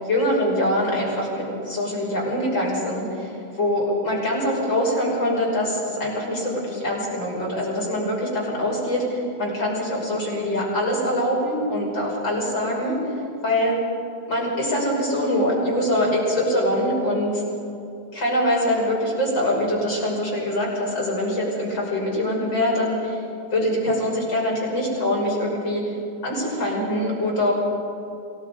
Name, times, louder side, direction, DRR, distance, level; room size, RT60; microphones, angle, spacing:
voice 1, 0.1-13.0 13.4-13.7 14.3-17.4 18.1-23.2 23.5-26.0 26.2-27.5, left 1 dB, 65° left, -4 dB, 6.7 m, -24 dB
28.5 x 17.5 x 5.4 m, 2.7 s
omnidirectional pair, 2.1 m